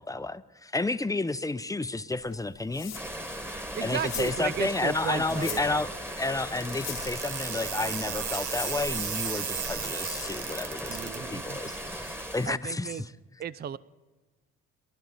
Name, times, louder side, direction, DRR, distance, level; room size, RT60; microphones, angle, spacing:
voice 1, 0.0-2.9 3.8-5.9 6.2-13.1, left 2 dB, 10° left, 13 dB, 0.7 m, -31 dB
sound 1, 2.1-10.5, left 9 dB, 60° left, 1.3 m, -43 dB
sound 2, 2.9-12.6, equal, 10° right, 1.6 m, -38 dB
voice 2, 3.7-5.8 10.9-11.6 12.5-13.0 13.4-13.8, right 9 dB, 35° right, 18 dB, 0.5 m, -35 dB
sound 3, 6.6-11.2, right 8 dB, 80° right, 1.1 m, -35 dB
22.0 x 12.0 x 4.1 m, 1.3 s
supercardioid pair, 55°, 29 cm